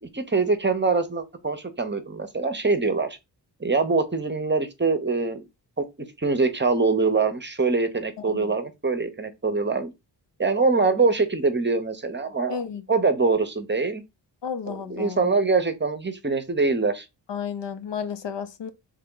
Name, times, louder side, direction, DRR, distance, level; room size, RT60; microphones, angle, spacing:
voice 1, 0.0-3.2 3.6-5.5 5.8-5.9 6.2-9.9 10.4-12.6 12.9-14.0 14.7-17.0, right 4 dB, 25° right, 0.7 m, -24 dB
voice 2, 12.5-12.8 14.4-15.3 17.3-18.7, left 7 dB, 70° left, 0.7 m, -32 dB
3.4 x 3.3 x 3.8 m
cardioid pair, 75°, 45 cm